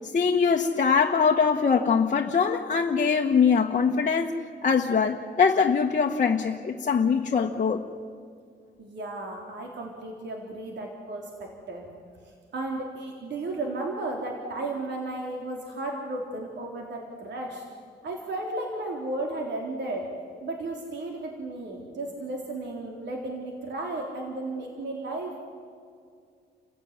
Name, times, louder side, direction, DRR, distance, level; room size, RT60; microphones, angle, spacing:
voice 1, 0.1-4.3 4.6-7.8, left 6 dB, 45° left, 1 dB, 1.3 m, -22 dB
voice 2, 8.8-11.9 12.5-17.6 18.0-20.1 20.4-25.4, right 2 dB, 75° right, 0 dB, 3.6 m, -34 dB
30.0 x 16.0 x 9.7 m, 2.2 s
cardioid pair, 115°, 18 cm